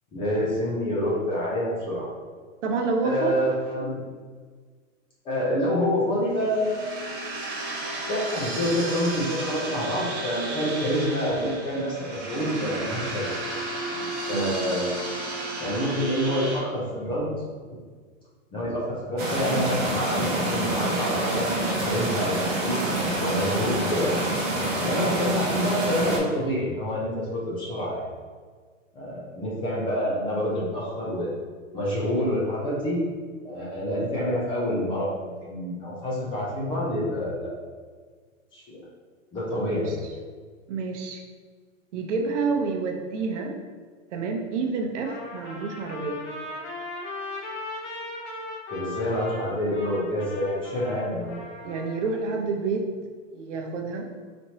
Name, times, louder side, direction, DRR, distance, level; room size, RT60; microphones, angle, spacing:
voice 1, 0.1-2.1 3.0-4.0 5.2-6.8 8.1-13.4 14.0-14.9 15.6-17.3 18.5-22.8 23.2-24.2 24.8-28.1 28.9-31.3 31.7-33.0 33.4-37.5 38.5-38.8 39.3-40.0 48.7-51.4, equal, 15° left, -6 dB, 0.5 m, -27 dB
voice 2, 2.6-3.3 3.8-3.9 14.3-14.5 39.7-39.9 40.7-41.2 41.9-43.6 44.1-46.2 51.6-52.9 53.3-54.1, right 4 dB, 65° right, 3 dB, 0.8 m, -28 dB
sound 1, 6.3-16.6, right 2 dB, 45° right, 1.2 m, -33 dB
sound 2, 19.2-26.2, right 1 dB, 25° right, 0.9 m, -26 dB
Trumpet, 45.0-52.1, left 2 dB, 60° left, 1.5 m, -38 dB
4.3 x 3.0 x 2.8 m, 1.6 s
hypercardioid pair, 140°, 39 cm